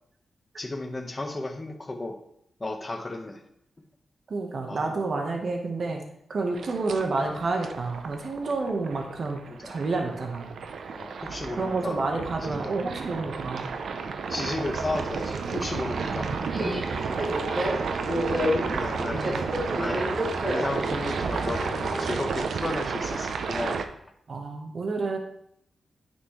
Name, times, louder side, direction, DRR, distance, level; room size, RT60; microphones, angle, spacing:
voice 1, 0.6-2.2 2.6-3.4 4.7-4.8 9.6-9.8 10.9-12.0 12.6-12.8 13.9-16.3 17.5-17.7 18.5-19.3 19.7-20.1 20.4-23.9, left 2 dB, 25° left, 4 dB, 1.2 m, -34 dB
voice 2, 4.3-6.0 6.3-9.4 9.6-10.5 11.6-13.7 16.1-16.4 16.9-17.3 19.1-19.6 24.3-25.2, right 3 dB, 60° right, 2 dB, 1.2 m, -30 dB
sound 1, 6.5-23.8, right 5 dB, 80° right, 0.6 m, -32 dB
Subway metro underground, 14.3-22.2, equal, 5° right, 2.4 m, -31 dB
9.5 x 5.8 x 3.2 m, 0.73 s
cardioid pair, 75°, 0 cm